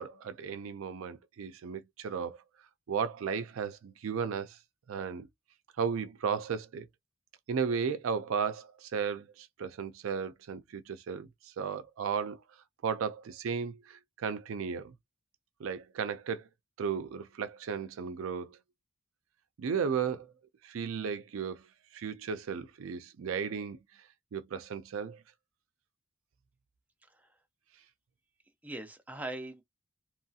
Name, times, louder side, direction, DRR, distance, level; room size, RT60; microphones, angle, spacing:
voice 1, 0.0-2.4 2.9-4.6 4.9-5.3 5.8-6.9 7.5-12.4 12.8-14.9 15.6-16.5 16.8-18.6 19.6-20.3 20.6-21.7 21.9-25.2, right 6 dB, 75° right, 0.4 m, -35 dB
voice 2, 28.6-29.6, right 2 dB, 5° right, 0.5 m, -41 dB
3.0 x 2.7 x 2.3 m
head